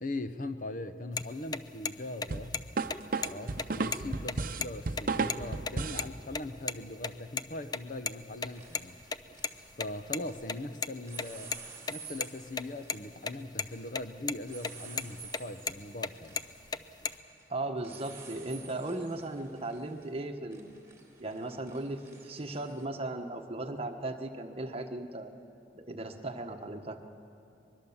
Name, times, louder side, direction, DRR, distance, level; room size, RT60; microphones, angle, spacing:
voice 1, 0.0-2.6 3.2-9.0 9.8-11.6 11.9-16.4, left 2 dB, 50° left, 9 dB, 0.9 m, -40 dB
sound 1, 1.2-1.3 1.5-1.6 1.9-2.0 2.2-2.6 2.9-3.0 3.2-3.3 3.6-4.7 4.9-5.0 5.3-5.4 5.7-6.0 6.3-6.8 7.0-8.1 8.4-10.9 11.2-13.0 13.3-13.4 13.6-14.0 14.3-14.7 15.0-16.1 16.4-17.1, left 5 dB, 25° left, 0.5 m, -34 dB
sound 2, 2.3-6.1, right 3 dB, 50° right, 0.8 m, -33 dB
sound 3, 7.6-7.9 8.2-10.6 11.0-22.8, right 5 dB, 15° right, 3.0 m, -52 dB
voice 2, 17.5-20.7 21.2-25.3 25.7-27.0, right 2 dB, 35° right, 5 dB, 1.3 m, -37 dB
23.5 x 22.0 x 7.2 m, 2.8 s
head